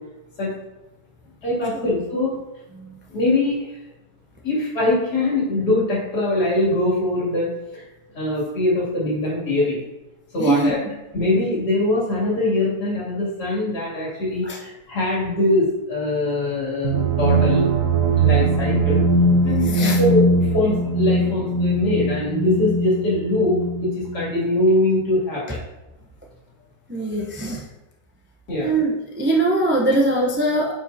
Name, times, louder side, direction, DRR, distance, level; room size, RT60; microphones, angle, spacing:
voice 1, 1.4-2.4 3.1-3.7 4.4-7.8 8.1-9.8 10.3-10.8 11.1-17.7 18.2-19.0 19.4-20.2 20.5-25.6 28.5-28.7, left 2 dB, 70° left, -6 dB, 3.3 m, -22 dB
voice 2, 10.4-10.7 14.4-14.6 19.6-20.0 26.9-27.7 28.6-30.7, right 2 dB, 15° right, -1 dB, 0.5 m, -22 dB
sound 1, 16.8-24.5, right 2 dB, 70° right, 1.4 m, -20 dB
9.2 x 5.4 x 2.8 m, 1.0 s
omnidirectional pair, 1.8 m